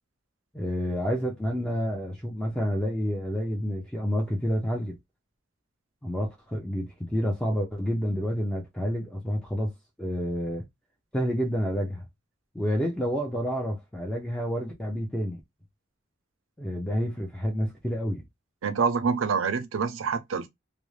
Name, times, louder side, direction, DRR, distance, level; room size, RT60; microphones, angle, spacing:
voice 1, 0.5-5.0 6.0-9.7 10.0-10.6 11.1-12.0 12.5-15.4 16.6-18.2, equal, 5° left, 0.4 m, -29 dB
voice 2, 18.6-20.5, right 5 dB, 85° right, 0.5 m, -26 dB
2.5 x 2.0 x 3.1 m
head